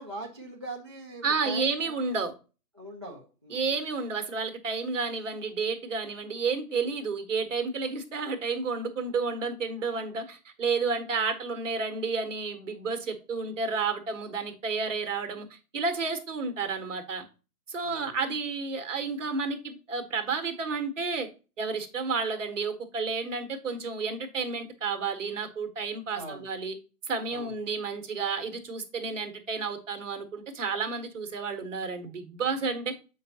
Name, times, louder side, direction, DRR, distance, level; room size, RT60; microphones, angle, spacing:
voice 1, 0.0-2.0 2.8-3.7 17.8-18.2 26.1-26.5 27.3-27.6, right 2 dB, 20° right, 0.4 m, -41 dB
voice 2, 1.2-2.3 3.5-17.2 17.7-21.3 21.6-26.7 27.1-32.9, right 4 dB, 55° right, 1.3 m, -31 dB
7.2 x 4.7 x 2.8 m
figure-of-eight pair, 145°, 46 cm